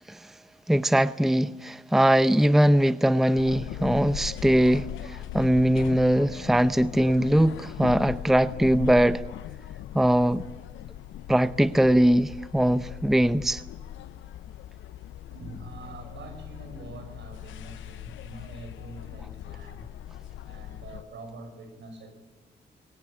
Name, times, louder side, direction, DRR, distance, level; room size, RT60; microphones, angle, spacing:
voice 1, 0.7-9.2 9.9-10.4 11.3-13.6, right 1 dB, ahead, 0.7 m, -21 dB
sound 1, 3.4-21.0, left 12 dB, 85° left, 0.6 m, -39 dB
voice 2, 15.3-19.9 20.4-22.2, right 2 dB, 70° right, 5.9 m, -44 dB
21.5 x 17.5 x 9.8 m
supercardioid pair, 50°, 19 cm